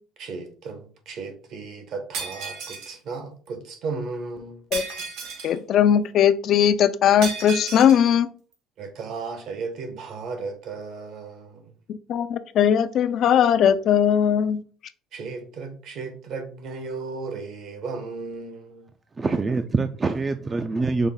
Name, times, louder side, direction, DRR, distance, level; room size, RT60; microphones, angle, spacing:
voice 1, 0.2-4.6 8.8-11.7 15.1-18.9, right 4 dB, 65° right, 1.1 m, -35 dB
Shatter, 2.1-3.0 4.7-5.6 7.2-8.0, right 5 dB, 80° right, 1.5 m, -33 dB
voice 2, 5.4-8.3 11.9-14.6, left 9 dB, 55° left, 0.4 m, -19 dB
voice 3, 19.2-21.1, right 3 dB, 25° right, 0.3 m, -24 dB
5.2 x 2.1 x 3.8 m
supercardioid pair, 95°, 0 cm